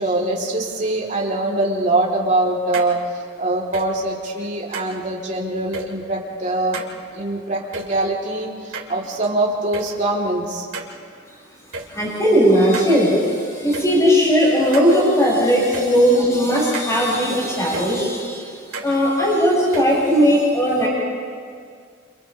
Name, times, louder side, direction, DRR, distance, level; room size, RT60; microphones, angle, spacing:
voice 1, 0.0-3.0 3.4-6.8 7.1-10.7, right 2 dB, 40° right, -4 dB, 3.5 m, -23 dB
sound 1, 2.7-2.9 3.7-3.9 4.7-4.9 5.7-5.9 6.7-6.9 7.7-7.9 8.7-9.3 9.7-9.9 10.7-10.9 11.7-11.9 12.7-12.9 13.7-13.9 14.7-14.9 15.7-15.9 16.7-16.9 17.7-17.9 18.7-18.9 19.7-19.9, right 4 dB, 85° right, 2.9 m, -31 dB
voice 2, 11.9-18.5 18.8-20.9, equal, 15° left, -6 dB, 7.3 m, -17 dB
29.5 x 29.0 x 3.5 m, 2.1 s
head